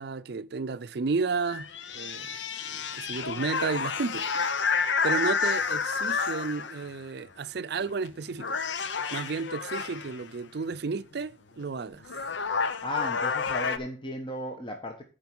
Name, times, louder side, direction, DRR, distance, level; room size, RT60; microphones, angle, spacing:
voice 1, 0.0-1.7 1.9-2.4 2.6-4.3 5.0-8.6 9.1-12.0, right 4 dB, 65° right, 0.5 m, -32 dB
sound 1, 1.4-6.9 7.8-8.1 8.4-10.2 11.6-11.7 12.0-13.8, left 5 dB, 90° left, 0.8 m, -30 dB
voice 2, 12.8-15.0, left 1 dB, 25° left, 1.2 m, -35 dB
10.5 x 5.2 x 6.0 m
head